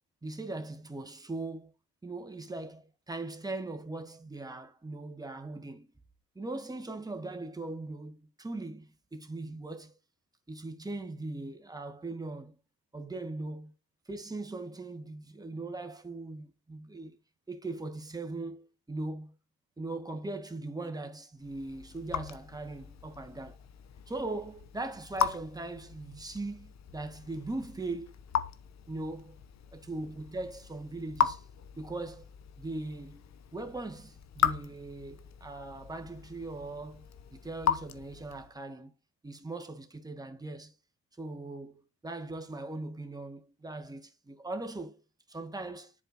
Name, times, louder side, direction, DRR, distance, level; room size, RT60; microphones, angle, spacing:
voice 1, 0.2-1.7 2.0-5.9 6.3-9.9 10.5-12.6 12.9-13.7 14.1-17.2 17.5-19.3 19.8-23.6 24.1-28.2 28.9-29.4 29.7-31.4 31.8-32.3 32.6-38.9 39.2-40.7 41.2-45.0 45.3-45.9, right 2 dB, 10° right, 1.6 m, -40 dB
Raindrop / Drip, 21.4-38.6, left 8 dB, 60° left, 1.0 m, -37 dB
11.0 x 4.5 x 2.2 m
cardioid pair, 90°, 30 cm